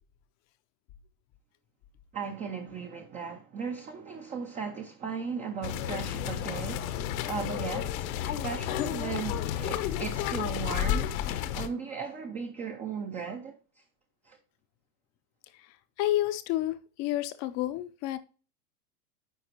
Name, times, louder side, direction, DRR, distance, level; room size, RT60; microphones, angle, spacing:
voice 1, 2.1-6.9 7.2-13.6 14.2-14.4, right 6 dB, 15° right, 0.5 m, -37 dB
sound 1, 5.6-11.7, left 11 dB, 60° left, 1.0 m, -31 dB
voice 2, 16.0-18.2, left 14 dB, 35° left, 0.6 m, -30 dB
10.0 x 4.3 x 3.0 m
supercardioid pair, 140°, 48 cm